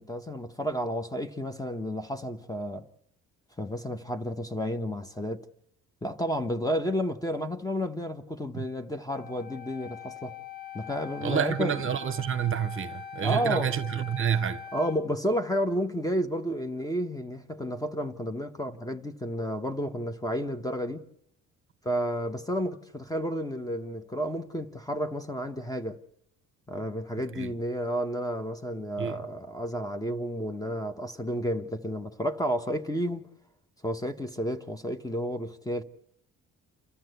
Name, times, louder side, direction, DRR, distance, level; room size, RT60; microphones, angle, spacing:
voice 1, 0.0-2.9 3.6-5.5 6.0-10.3 10.7-11.8 13.2-13.7 14.7-21.1 21.8-26.0 26.7-33.3 33.8-35.8, equal, 10° left, 1.2 m, -31 dB
Wind instrument woodwind instrument, 9.1-15.0, left 7 dB, 30° left, 1.8 m, -42 dB
voice 2, 11.2-14.6 27.4-27.5 29.0-29.2, right 8 dB, 45° right, 0.9 m, -28 dB
28.0 x 13.5 x 8.1 m
cardioid pair, 90°, 30 cm